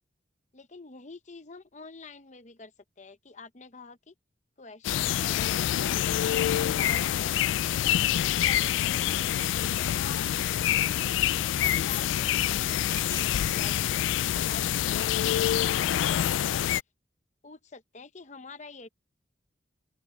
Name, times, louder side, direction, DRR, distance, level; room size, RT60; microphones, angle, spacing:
voice 1, 0.5-4.1 4.6-7.4 7.6-7.9 8.5-9.7 10.0-10.2 10.9-12.6 12.9-13.1 13.5-16.7 17.4-18.9, left 3 dB, 40° left, 0.9 m, -47 dB
sound 1, 4.8-16.8, left 11 dB, 90° left, 0.3 m, -26 dB
sound 2, 7.7-15.0, left 5 dB, 65° left, 4.3 m, -52 dB
sound 3, 8.9-13.9, left 1 dB, 15° left, 1.8 m, -48 dB
open air
head